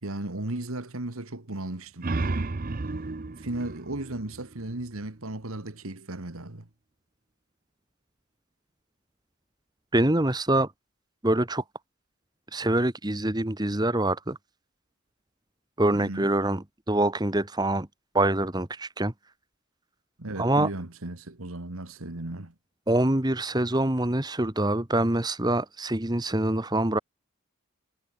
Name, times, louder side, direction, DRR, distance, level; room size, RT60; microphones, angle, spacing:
voice 1, 0.0-2.1 3.4-6.7 15.9-16.3 20.2-22.5, right 2 dB, 75° right, 2.0 m, -35 dB
sound 1, 1.7-5.2, right 3 dB, 40° right, 0.6 m, -33 dB
voice 2, 9.9-10.7 11.2-11.6 12.5-14.4 15.8-17.9 18.1-19.1 20.4-20.7 22.9-27.0, right 1 dB, 20° right, 1.4 m, -25 dB
head